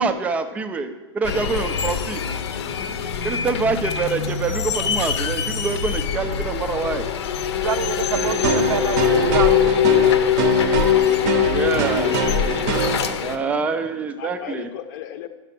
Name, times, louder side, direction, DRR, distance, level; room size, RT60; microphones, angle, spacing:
voice 1, 0.0-2.2 3.2-7.0 11.4-12.2 13.2-14.7, right 4 dB, 10° right, 9 dB, 0.3 m, -25 dB
sound 1, 1.2-13.4, left 9 dB, 70° left, 0.8 m, -22 dB
voice 2, 7.6-9.8, right 9 dB, 85° right, 14 dB, 0.5 m, -27 dB
sound 2, 8.1-13.1, right 6 dB, 40° right, 0.7 m, -25 dB
voice 3, 14.1-15.3, left 10 dB, 40° left, 10 dB, 0.7 m, -38 dB
10.5 x 5.9 x 5.8 m, 1.3 s
supercardioid pair, 160°, 15 cm